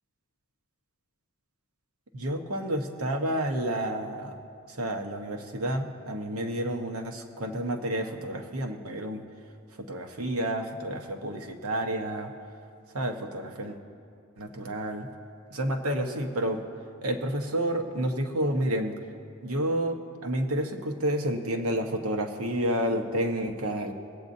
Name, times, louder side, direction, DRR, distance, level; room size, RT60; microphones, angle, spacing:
voice 1, 2.1-4.3 4.7-9.2 9.9-12.3 12.9-13.8 14.4-15.1 15.5-16.6 17.0-18.9 19.4-20.0 20.2-23.9, right 1 dB, 70° right, 3 dB, 1.0 m, -30 dB
21.5 x 8.4 x 2.7 m, 2.5 s
head